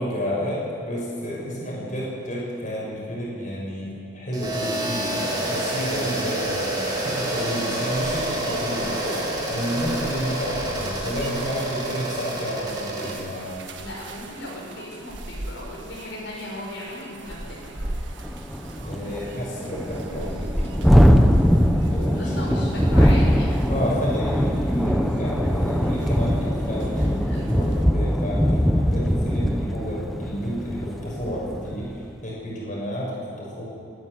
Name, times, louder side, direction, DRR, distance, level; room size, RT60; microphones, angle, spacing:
voice 1, 0.0-13.5 18.8-21.2 21.9-22.3 23.7-33.6, equal, 40° left, -5 dB, 6.8 m, -31 dB
sound 1, 4.3-13.1, right 1 dB, 20° right, 3.4 m, -28 dB
sound 2, 7.9-27.8, right 2 dB, 70° right, 1.6 m, -40 dB
voice 2, 13.8-17.7 21.8-23.6 27.3-27.4, left 1 dB, 75° left, -4 dB, 6.0 m, -36 dB
Thunderstorm, 17.4-17.5 17.8-17.9 18.2-31.9, equal, ahead, 0.9 m, -21 dB
23.0 x 12.5 x 9.5 m, 2.4 s
head